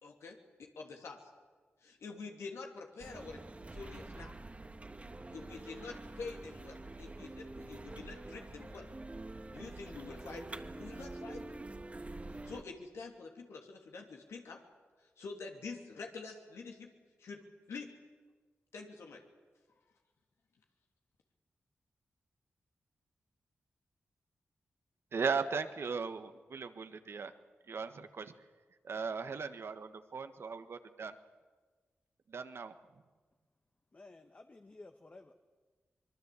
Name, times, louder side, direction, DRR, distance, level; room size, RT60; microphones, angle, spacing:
voice 1, 0.0-1.3 1.8-3.4 3.7-4.4 5.3-8.9 9.5-11.5 12.4-14.6 15.0-16.9 17.2-17.4 17.7-17.9 18.7-19.2, left 4 dB, 85° left, 1 dB, 2.7 m, -47 dB
sound 1, 3.0-12.6, right 2 dB, 30° right, 1.6 m, -46 dB
voice 2, 25.1-27.3 27.7-28.3 28.8-31.2 32.3-32.7, right 5 dB, 65° right, 9 dB, 1.5 m, -37 dB
voice 3, 33.9-35.3, left 2 dB, 35° left, 6 dB, 1.4 m, -54 dB
24.5 x 21.5 x 8.4 m, 1.4 s
cardioid pair, 55°, 4 cm